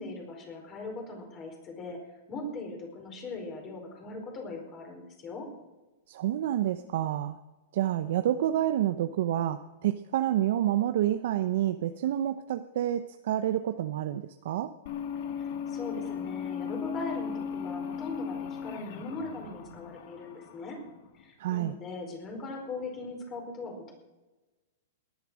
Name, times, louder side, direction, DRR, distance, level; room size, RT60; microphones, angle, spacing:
voice 1, 0.0-2.0 2.3-5.5 15.3-20.8 21.1-23.9, left 2 dB, 25° left, 2 dB, 4.7 m, -40 dB
voice 2, 6.1-7.4 7.7-14.7 21.4-21.7, right 12 dB, 60° right, 9 dB, 0.8 m, -28 dB
sound 1, 14.9-21.2, left 7 dB, 55° left, 1.9 m, -37 dB
18.5 x 10.5 x 6.3 m, 1.1 s
hypercardioid pair, 150°, 0 cm